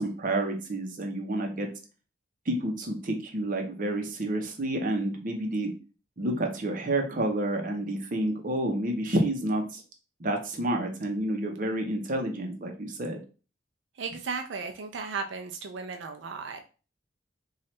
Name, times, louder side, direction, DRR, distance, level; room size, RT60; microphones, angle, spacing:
voice 1, 0.0-1.7 2.5-5.7 6.2-9.8 10.2-13.2, right 1 dB, 45° right, 3 dB, 0.7 m, -29 dB
voice 2, 14.0-16.6, right 4 dB, 80° right, 5 dB, 0.4 m, -35 dB
3.1 x 2.4 x 4.3 m, 0.35 s
head